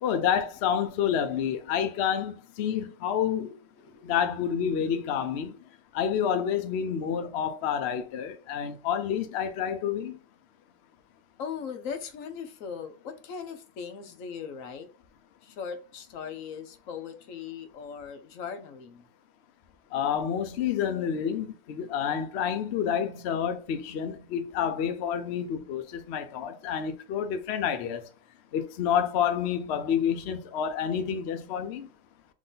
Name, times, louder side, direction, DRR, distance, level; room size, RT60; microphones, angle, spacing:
voice 1, 0.0-3.5 4.1-5.5 5.9-10.2 19.9-28.1 28.5-31.9, left 8 dB, 80° left, 0.6 m, -29 dB
voice 2, 3.8-4.2 11.4-14.9 15.4-19.1, left 6 dB, 60° left, 1.0 m, -39 dB
3.7 x 3.1 x 3.8 m
omnidirectional pair, 1.8 m